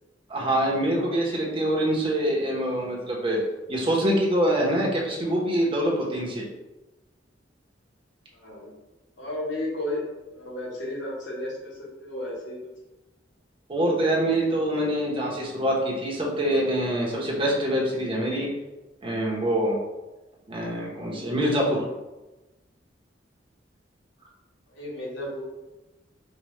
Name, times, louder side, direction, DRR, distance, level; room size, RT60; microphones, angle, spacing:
voice 1, 0.3-3.4 3.7-6.4 13.7-18.5 19.0-19.8 20.5-21.8, right 1 dB, 30° right, -3 dB, 0.9 m, -25 dB
voice 2, 8.3-8.7 9.2-10.0 10.3-12.7 24.7-25.4, left 1 dB, 85° left, -4 dB, 1.2 m, -33 dB
4.8 x 2.4 x 3.2 m, 1.0 s
head